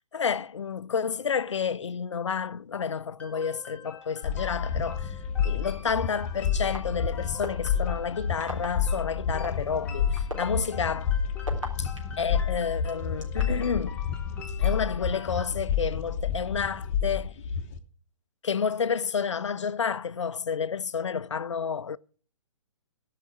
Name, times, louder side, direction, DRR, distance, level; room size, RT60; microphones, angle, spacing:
voice 1, 0.1-11.2 11.8-11.9 12.2-14.0 14.6-17.4 18.4-22.0, left 6 dB, 65° left, 0.4 m, -30 dB
sound 1, 3.2-15.5, left 5 dB, 5° left, 1.8 m, -45 dB
sound 2, 4.2-17.8, left 7 dB, 30° left, 0.9 m, -30 dB
sound 3, 5.9-6.0 6.7-6.8 7.4-7.7 8.4-8.7 9.4-9.5 10.2-12.2 12.9-13.7, equal, 75° right, 3.6 m, -35 dB
15.0 x 5.8 x 7.2 m
figure-of-eight pair, 130°, 17 cm